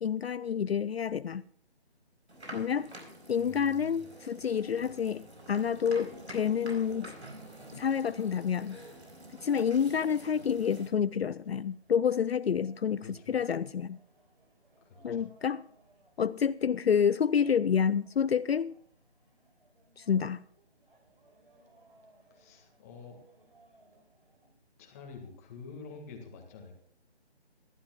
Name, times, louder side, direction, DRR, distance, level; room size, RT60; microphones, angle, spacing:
voice 1, 0.0-1.4 2.5-2.9 3.3-7.1 7.7-8.8 9.4-14.0 15.0-15.7 16.2-18.8 20.0-20.4, left 7 dB, 70° left, 0.5 m, -28 dB
sound 1, 2.3-10.9, right 1 dB, 85° right, 4.7 m, -48 dB
voice 2, 3.4-4.0 13.0-13.4 14.8-15.3 22.3-23.2 24.8-26.8, left 4 dB, 15° left, 1.8 m, -48 dB
sound 2, 5.5-24.5, right 2 dB, 55° right, 4.7 m, -64 dB
24.0 x 12.0 x 2.3 m
figure-of-eight pair, 160°, 33 cm